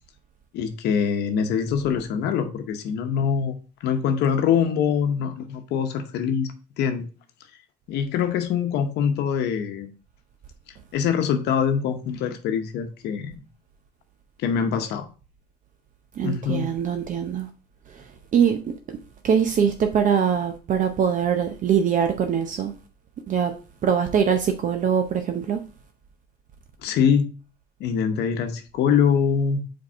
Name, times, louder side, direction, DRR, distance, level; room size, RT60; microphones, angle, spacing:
voice 1, 0.5-3.6 3.8-7.1 7.9-9.9 10.9-13.3 14.4-15.1 16.2-16.7 26.8-27.3 27.8-29.6, left 7 dB, 80° left, 0.9 m, -24 dB
voice 2, 16.2-17.5 18.3-18.7 19.2-22.7 23.3-23.5 23.8-25.6, right 7 dB, 50° right, 0.7 m, -22 dB
4.9 x 4.6 x 4.5 m
cardioid pair, 110°, 17 cm